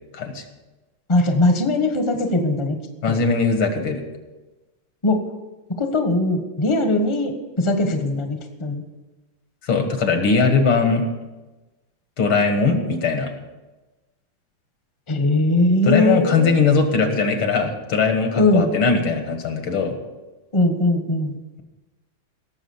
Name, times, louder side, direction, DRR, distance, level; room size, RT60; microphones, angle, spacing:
voice 1, 1.1-2.8 3.1-3.2 5.0-5.2 5.8-8.8 15.1-16.5 18.3-18.7 20.5-21.4, left 2 dB, 15° left, 5 dB, 1.1 m, -20 dB
voice 2, 3.0-4.0 9.6-11.1 12.2-13.3 15.8-20.0, left 4 dB, 75° left, 6 dB, 2.5 m, -20 dB
17.5 x 7.2 x 7.2 m, 1.1 s
omnidirectional pair, 2.4 m